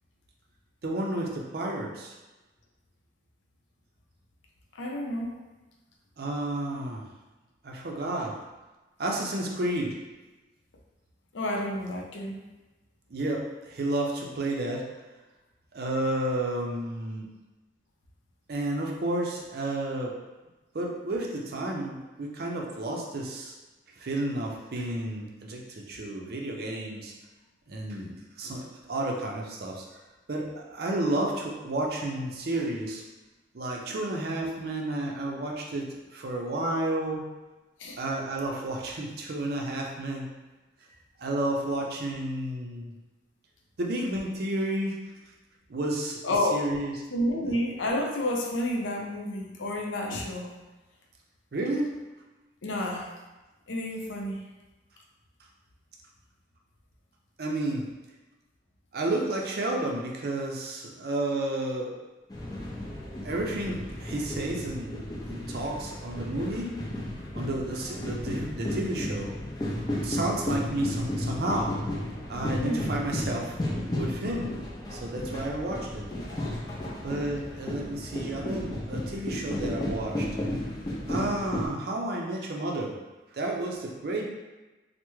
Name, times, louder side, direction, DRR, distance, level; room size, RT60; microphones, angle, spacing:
voice 1, 0.8-2.1 6.2-7.0 7.6-8.4 9.0-10.0 13.1-14.8 15.7-17.3 18.5-20.1 20.7-23.5 24.0-27.1 27.7-28.1 28.4-29.8 30.3-33.0 33.5-37.3 38.0-40.3 41.2-42.9 43.8-45.0 45.7-46.2 46.5-46.9 47.4-47.6 51.5-51.9 57.4-57.8 58.9-61.9 63.2-65.0 65.3-66.7 67.3-69.3 70.0-71.7 72.3-73.6 73.9-74.5 74.9-76.1 77.0-80.3 81.1-82.9 83.3-84.3, right 1 dB, 55° right, 0 dB, 0.5 m, -31 dB
voice 2, 4.8-5.3 11.3-12.4 37.8-38.0 46.2-46.7 47.1-50.5 52.6-53.1 53.7-54.5 72.6-72.9, left 1 dB, 85° left, 0 dB, 0.5 m, -30 dB
sound 1, 62.3-81.7, left 1 dB, 20° left, 0.4 m, -33 dB
3.4 x 2.1 x 3.0 m, 1.1 s
head